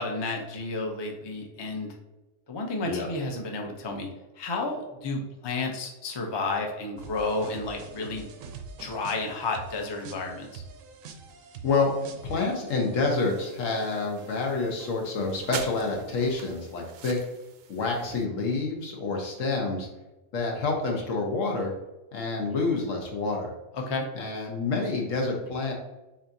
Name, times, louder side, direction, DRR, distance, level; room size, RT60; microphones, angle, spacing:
voice 1, 0.0-1.9 2.5-4.1 4.4-8.3 8.8-10.6 23.7-24.1, left 3 dB, 30° left, 1 dB, 0.5 m, -31 dB
sound 1, 7.0-14.5 14.8-16.5, right 5 dB, 85° right, 1.0 m, -46 dB
voice 2, 12.2-17.2 17.7-19.9 20.3-21.7 22.1-23.5 24.1-25.7, left 3 dB, 75° left, 1 dB, 1.3 m, -28 dB
sound 2, 13.1-18.2, right 7 dB, 65° right, 0.7 m, -44 dB
7.1 x 2.6 x 2.7 m, 1.0 s
omnidirectional pair, 1.4 m